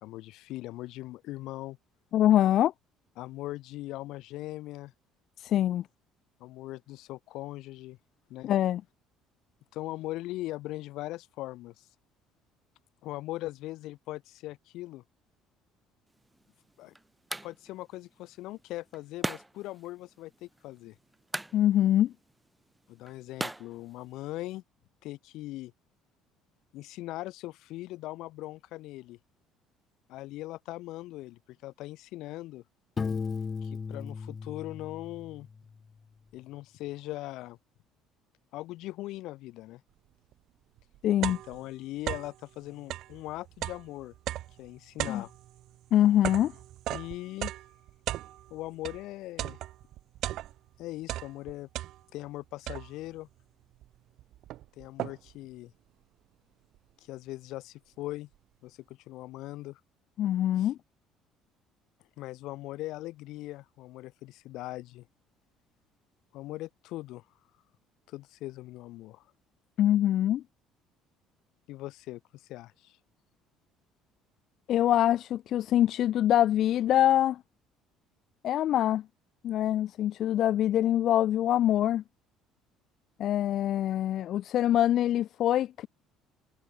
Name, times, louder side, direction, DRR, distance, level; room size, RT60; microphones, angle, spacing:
voice 1, 0.0-1.8 3.2-4.9 6.4-8.0 8.3-8.5 9.7-11.9 13.0-15.0 16.8-16.9 17.4-21.0 22.9-24.6 25.0-25.7 26.7-29.2 30.1-32.6 33.6-35.5 36.3-37.6 38.5-39.8 41.3-44.1 44.6-45.3 46.9-47.5 48.5-49.6 50.8-51.7 52.1-53.3 54.8-55.7 57.0-58.3 58.6-59.8 60.6-60.7 62.2-65.1 66.3-67.2 68.1-69.3 71.7-73.0, left 17 dB, 75° left, 2.0 m, -40 dB
voice 2, 2.1-2.7 5.4-5.9 8.4-8.8 21.5-22.1 41.0-41.4 45.1-45.2 45.9-46.5 60.2-60.8 69.8-70.4 74.7-77.4 78.4-79.0 79.4-82.0 83.2-85.9, left 12 dB, 55° left, 0.7 m, -24 dB
sound 1, 16.1-24.6, right 1 dB, 10° right, 3.9 m, -42 dB
Piano, 33.0-35.7, left 5 dB, 25° left, 1.1 m, -36 dB
sound 2, 40.3-40.4 40.8-42.4 42.8-49.1 49.4-50.8 51.0-52.3 52.7-53.2 53.8-53.9 54.2-55.4, right 14 dB, 65° right, 1.4 m, -37 dB
cardioid pair, 125°, 0 cm